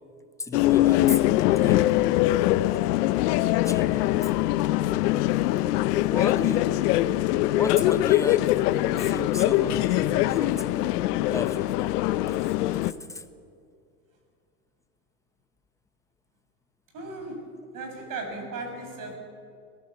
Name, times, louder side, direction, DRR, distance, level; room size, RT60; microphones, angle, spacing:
voice 1, 0.4-2.6 3.6-4.3 6.1-6.8 7.5-10.9 11.3-11.9 12.3-12.4 12.8-13.2, left 2 dB, 5° left, 10 dB, 1.0 m, -35 dB
sound 1, 0.5-12.9, left 15 dB, 75° left, 0.8 m, -23 dB
voice 2, 16.9-17.4 17.7-19.1, right 3 dB, 45° right, 3 dB, 6.8 m, -36 dB
22.0 x 18.0 x 7.2 m, 2.4 s
supercardioid pair, 110°, 46 cm